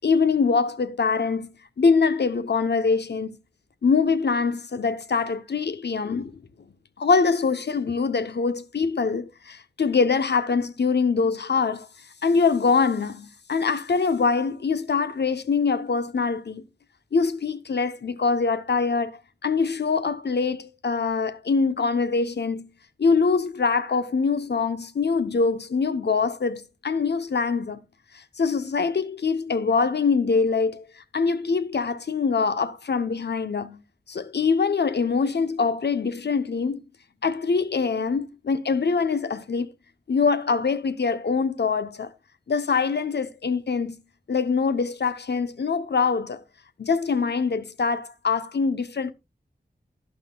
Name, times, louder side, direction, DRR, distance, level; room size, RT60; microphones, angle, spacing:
voice 1, 0.0-1.5 1.8-3.4 3.8-6.3 7.0-11.9 12.2-16.6 17.1-22.7 23.0-27.8 28.1-33.8 34.1-36.8 37.2-39.7 40.1-42.1 42.5-44.0 44.3-46.4 46.8-49.1, left 5 dB, 70° left, 0.7 m, -24 dB
11.5 x 11.0 x 2.3 m
wide cardioid pair, 85°, 18 cm